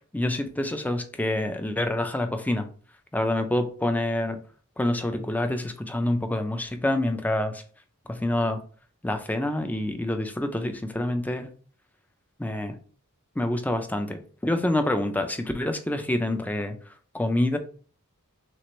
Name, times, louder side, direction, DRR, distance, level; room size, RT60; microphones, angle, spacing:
voice 1, 0.1-2.7 3.1-4.4 4.8-7.6 8.1-8.6 9.0-11.5 12.4-12.8 13.4-16.8 17.1-17.6, left 1 dB, 5° left, 7 dB, 0.4 m, -27 dB
6.1 x 2.5 x 3.1 m, 0.43 s
head